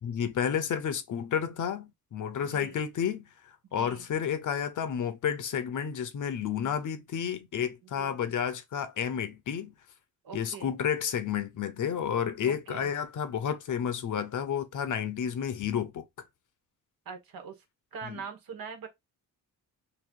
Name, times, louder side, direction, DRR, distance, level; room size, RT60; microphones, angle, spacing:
voice 1, 0.0-9.7 10.3-16.0 18.0-18.2, left 8 dB, 55° left, 0.8 m, -31 dB
voice 2, 2.4-2.8 3.7-4.0 8.0-8.2 10.2-10.7 12.4-12.9 17.0-17.5 17.9-18.9, right 6 dB, 75° right, 1.3 m, -42 dB
2.9 x 2.9 x 4.4 m
wide cardioid pair, 160°, 36 cm